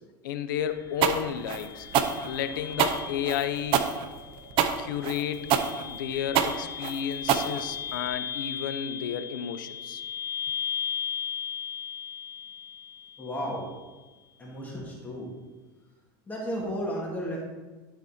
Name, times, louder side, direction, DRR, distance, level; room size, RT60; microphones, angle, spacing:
voice 1, 0.2-1.9 2.2-3.9 4.8-5.5 5.9-10.0, left 9 dB, 85° left, 11 dB, 0.6 m, -32 dB
sound 1, 0.6-13.6, left 8 dB, 30° left, 2.1 m, -37 dB
sound 2, 1.0-8.1, right 8 dB, 55° right, 0.8 m, -26 dB
voice 2, 13.2-13.7 14.4-15.3 16.3-17.4, equal, 15° left, -3 dB, 2.2 m, -33 dB
12.0 x 4.2 x 4.2 m, 1.2 s
supercardioid pair, 110°, 11 cm